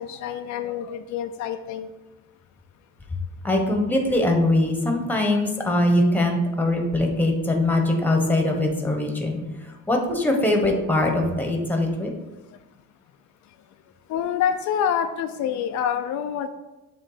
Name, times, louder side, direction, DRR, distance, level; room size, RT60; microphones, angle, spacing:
voice 1, 0.0-1.9 14.1-16.5, left 8 dB, 65° left, 7 dB, 0.5 m, -26 dB
voice 2, 3.4-9.4 9.9-12.1, left 1 dB, 5° left, 2 dB, 1.1 m, -22 dB
7.4 x 3.2 x 5.0 m, 1.1 s
cardioid pair, 120°, 31 cm